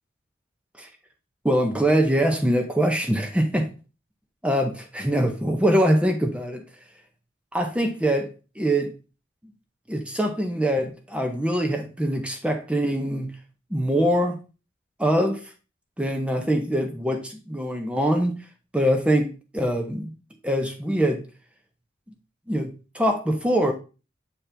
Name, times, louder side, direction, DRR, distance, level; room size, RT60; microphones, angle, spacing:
voice 1, 1.4-3.7 4.4-6.6 7.5-8.9 9.9-13.3 13.7-14.4 15.0-15.5 16.0-18.4 18.7-20.1 20.4-21.2 22.5-23.7, right 1 dB, 5° right, 4 dB, 0.6 m, -23 dB
7.3 x 4.2 x 3.4 m, 0.32 s
head